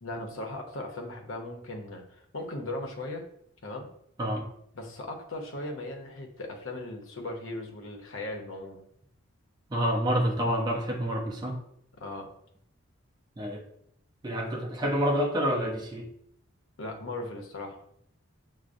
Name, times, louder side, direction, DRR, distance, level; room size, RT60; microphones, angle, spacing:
voice 1, 0.0-2.0 2.3-3.2 3.6-3.9 4.7-8.9 12.0-12.3 16.8-17.8, left 2 dB, 65° left, 2 dB, 0.7 m, -38 dB
voice 2, 9.7-11.6 13.4-13.6 14.2-16.1, equal, 20° right, 0 dB, 0.5 m, -28 dB
6.0 x 2.0 x 2.5 m, 0.71 s
head